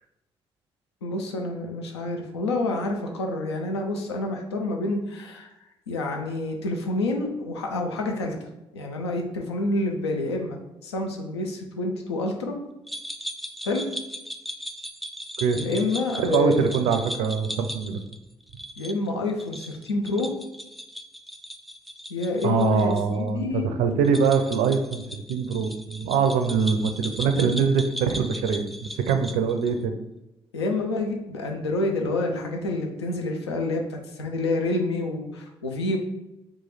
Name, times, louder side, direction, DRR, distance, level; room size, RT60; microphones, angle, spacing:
voice 1, 1.0-5.5 5.9-8.4 8.7-12.6 13.6-13.9 15.5-16.7 18.8-20.3 22.1-23.7 30.5-36.0, left 2 dB, 85° left, 3 dB, 0.4 m, -28 dB
sound 1, 12.9-23.0 23.3-23.4 24.0-29.8, equal, ahead, 0.3 m, -38 dB
voice 2, 16.2-18.0 22.4-29.9, right 6 dB, 70° right, 7 dB, 0.4 m, -23 dB
3.1 x 2.3 x 3.9 m, 0.92 s
figure-of-eight pair, 40°, 13 cm